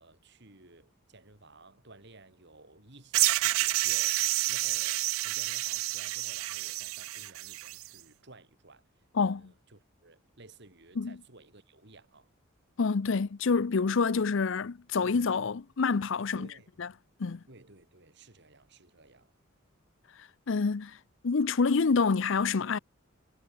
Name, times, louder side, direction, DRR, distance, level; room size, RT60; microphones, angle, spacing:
voice 1, 0.0-8.8 9.2-12.3 15.0-15.2 16.3-16.8 17.5-19.3, right 2 dB, 55° right, 3.3 m, -55 dB
sound 1, 3.1-7.9, right 19 dB, 75° right, 0.3 m, -29 dB
voice 2, 12.8-16.5 16.8-16.9 17.2-17.4 20.2-21.0 21.2-22.8, left 4 dB, 65° left, 0.6 m, -27 dB
head